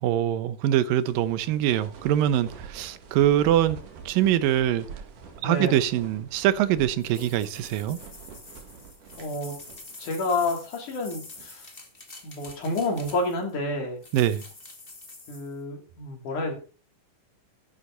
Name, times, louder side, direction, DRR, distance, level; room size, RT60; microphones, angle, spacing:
voice 1, 0.0-3.8 4.1-4.9 5.4-8.0 14.1-14.5, right 11 dB, 90° right, 2.6 m, -23 dB
sound 1, 0.7-10.2 10.4-10.6 11.2-11.6 12.2-13.3, right 6 dB, 65° right, 3.5 m, -46 dB
voice 2, 5.4-5.8 9.2-9.5 10.0-11.7 12.2-14.0 15.3-16.6, left 2 dB, 65° left, 4.8 m, -29 dB
sound 2, 7.0-13.5 14.0-15.5, left 2 dB, 20° left, 1.8 m, -46 dB
13.0 x 11.5 x 4.0 m
omnidirectional pair, 3.9 m